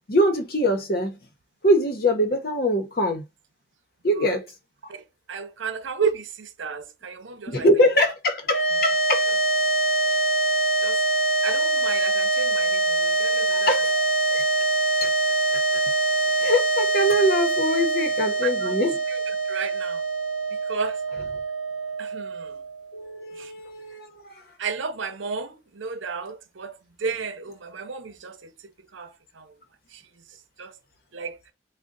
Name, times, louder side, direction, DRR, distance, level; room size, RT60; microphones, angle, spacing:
voice 1, 0.1-1.2 1.6-3.2 4.0-4.4 7.5-9.3 10.1-10.2 13.5-14.4 15.0-15.1 15.5-15.6 16.4-19.0 22.9-24.2, equal, 50° left, 0.9 m, -23 dB
voice 2, 5.3-7.7 10.8-11.0 11.4-13.7 18.4-18.7 19.1-19.2 19.5-20.0 20.7-21.0 22.0-22.6 23.4-23.5 24.6-26.7 27.0-29.1 29.4-29.5 29.9-30.0 30.6-30.7 31.1-31.4, right 5 dB, 80° right, 0.7 m, -32 dB
sound 1, 8.5-22.9, right 3 dB, 80° left, 0.8 m, -24 dB
3.7 x 2.2 x 3.9 m
head